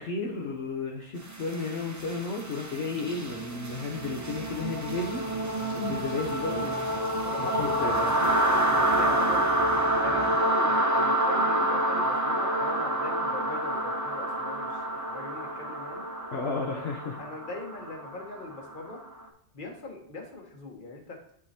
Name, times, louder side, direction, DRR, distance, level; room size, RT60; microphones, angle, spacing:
voice 1, 0.0-6.8 7.4-8.1 16.3-17.2, left 4 dB, 70° left, -1 dB, 1.1 m, -33 dB
sound 1, 1.3-19.1, right 1 dB, 20° right, 0.6 m, -28 dB
voice 2, 7.2-9.5 10.0-16.0 16.7-16.9 17.2-19.0 19.5-21.2, left 3 dB, 50° left, 1 dB, 1.4 m, -40 dB
11.0 x 3.8 x 2.9 m, 0.63 s
omnidirectional pair, 1.1 m